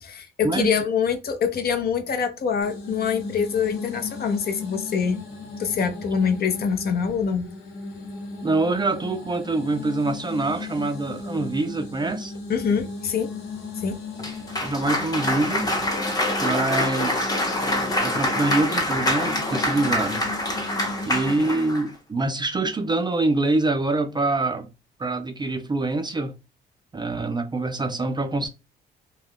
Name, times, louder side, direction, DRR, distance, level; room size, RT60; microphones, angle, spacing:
voice 1, 0.0-5.2 5.6-7.5 12.5-13.3 13.8-14.0 14.6-14.7, left 6 dB, 50° left, 0.6 m, -25 dB
sound 1, 2.6-21.5, left 3 dB, 75° left, 1.0 m, -37 dB
voice 2, 8.4-12.3 14.6-15.7 16.4-17.6 18.0-20.3 21.1-24.7 25.0-26.3 26.9-28.5, right 2 dB, 20° right, 0.4 m, -25 dB
Cheering / Applause, 14.2-21.9, left 1 dB, 20° left, 0.8 m, -25 dB
2.3 x 2.2 x 3.4 m
cardioid pair, 90°, 20 cm